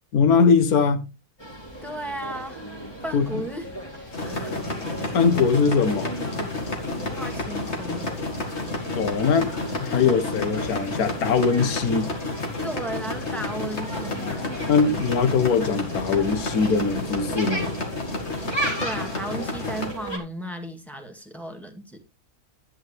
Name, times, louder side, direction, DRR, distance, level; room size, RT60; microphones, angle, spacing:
voice 1, 0.1-1.0 3.1-3.4 5.1-6.1 8.9-9.5 9.8-12.1 14.7-17.8, left 5 dB, 80° left, 1.6 m, -21 dB
sound 1, 1.4-20.2, right 1 dB, 15° left, 2.7 m, -36 dB
voice 2, 1.8-2.7 3.0-3.7 3.9-4.6 7.0-8.1 8.4-8.6 12.6-14.7 18.4-22.0, right 1 dB, ahead, 2.0 m, -35 dB
sound 2, 4.1-19.9, left 2 dB, 45° left, 2.3 m, -31 dB
11.0 x 9.8 x 3.4 m
omnidirectional pair, 1.6 m